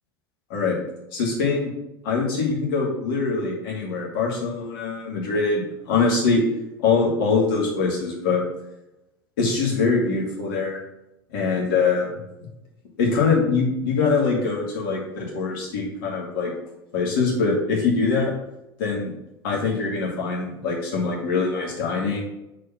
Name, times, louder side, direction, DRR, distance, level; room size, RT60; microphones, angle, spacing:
voice 1, 1.1-1.7 2.0-6.4 6.8-8.4 9.4-10.8 11.3-12.1 13.0-16.5 16.9-18.3 18.8-19.1 19.4-22.2, left 4 dB, 60° left, -3 dB, 2.2 m, -23 dB
4.7 x 4.6 x 5.7 m, 0.89 s
figure-of-eight pair, 75°, 13 cm